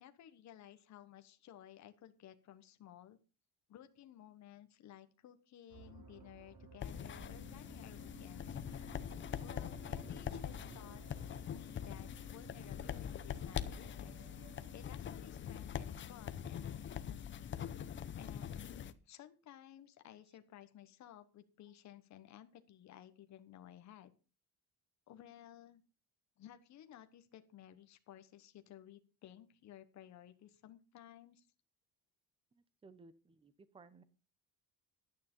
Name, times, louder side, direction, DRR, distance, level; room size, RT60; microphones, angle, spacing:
voice 1, 0.0-3.2 3.7-9.0 9.4-11.0 11.5-14.3 14.7-17.4 18.2-18.8 19.1-24.1 25.1-25.8 26.4-31.5, left 11 dB, 50° left, 9 dB, 1.2 m, -56 dB
sound 1, 5.7-16.9, right 4 dB, 60° right, 4.3 m, -58 dB
sound 2, 6.8-18.9, left 9 dB, 30° left, 0.7 m, -43 dB
voice 2, 32.6-34.0, right 4 dB, 15° right, 14 dB, 0.8 m, -60 dB
11.5 x 9.4 x 5.4 m, 0.35 s
cardioid pair, 165°, 37 cm